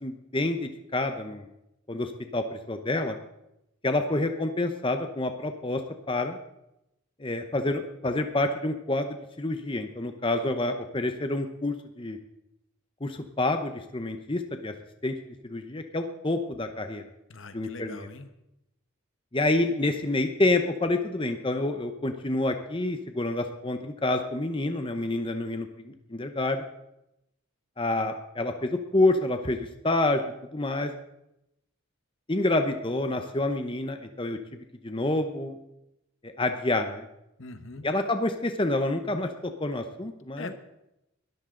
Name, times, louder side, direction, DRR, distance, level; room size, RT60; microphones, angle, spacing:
voice 1, 0.0-1.5 1.9-3.2 3.8-5.8 6.1-6.4 7.2-12.2 13.0-14.7 15.0-15.1 15.4-17.0 17.5-18.1 19.3-26.6 27.8-30.2 30.5-30.9 32.3-34.4 34.8-35.6 36.2-37.0 37.8-39.3 39.6-40.5, left 2 dB, 25° left, 7 dB, 0.8 m, -28 dB
voice 2, 17.3-18.3 37.4-37.9 40.4-40.5, left 3 dB, 65° left, 9 dB, 1.2 m, -41 dB
21.0 x 13.5 x 3.9 m, 0.86 s
head